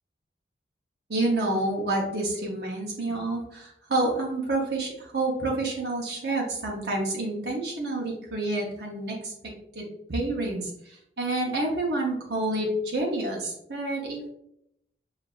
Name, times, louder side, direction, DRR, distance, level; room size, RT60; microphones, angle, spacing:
voice 1, 1.1-9.3 9.7-10.7 11.2-14.3, right 2 dB, 70° right, -2 dB, 0.8 m, -28 dB
6.5 x 2.4 x 2.4 m, 0.75 s
head